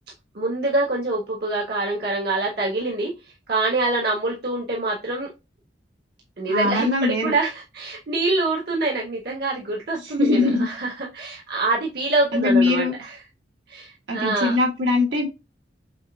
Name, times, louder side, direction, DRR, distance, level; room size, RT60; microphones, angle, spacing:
voice 1, 0.3-3.1 3.5-5.3 6.4-13.2 13.7-14.5, right 2 dB, 60° right, -2 dB, 1.3 m, -25 dB
voice 2, 6.5-7.3 10.0-10.7 12.3-12.9 14.1-15.3, left 2 dB, 80° right, 0 dB, 1.7 m, -21 dB
6.6 x 2.6 x 2.3 m, 0.25 s
head